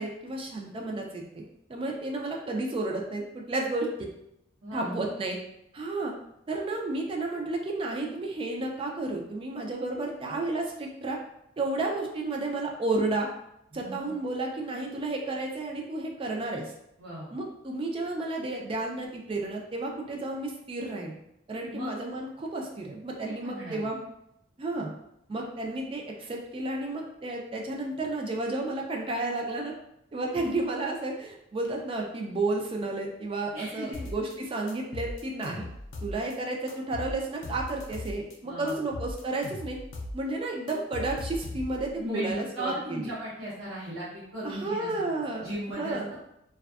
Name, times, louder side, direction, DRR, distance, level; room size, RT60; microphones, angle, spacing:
voice 1, 0.0-1.4 1.7-4.1 4.7-5.4 5.7-6.1 6.5-11.2 11.6-13.3 13.7-16.7 17.3-21.1 21.5-24.0 24.6-24.9 25.3-29.7 30.1-35.7 36.0-39.8 40.1-43.1 44.4-45.5 45.8-46.2, right 2 dB, 25° right, 0 dB, 0.3 m, -32 dB
voice 2, 13.7-14.1 17.0-17.3 21.7-21.9 23.4-23.9 33.5-34.1 38.4-38.9 42.0-45.0 45.4-46.0, equal, 75° right, -9 dB, 0.7 m, -37 dB
sound 1, 33.9-34.3 34.7-36.3 36.7-38.3 38.7-40.2 40.4-41.9, left 1 dB, 70° left, 0.4 m, -38 dB
2.5 x 2.2 x 2.3 m, 0.81 s
head